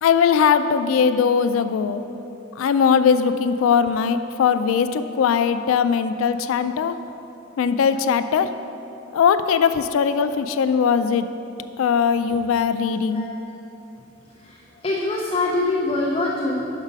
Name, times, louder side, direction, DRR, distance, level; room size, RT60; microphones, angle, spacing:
voice 1, 0.0-2.0 2.6-6.9 7.6-8.5 9.1-11.3 11.8-13.3, left 6 dB, 90° left, 11 dB, 0.3 m, -20 dB
voice 2, 14.8-16.7, left 2 dB, 25° left, -2 dB, 0.5 m, -24 dB
6.1 x 5.2 x 5.2 m, 3.0 s
head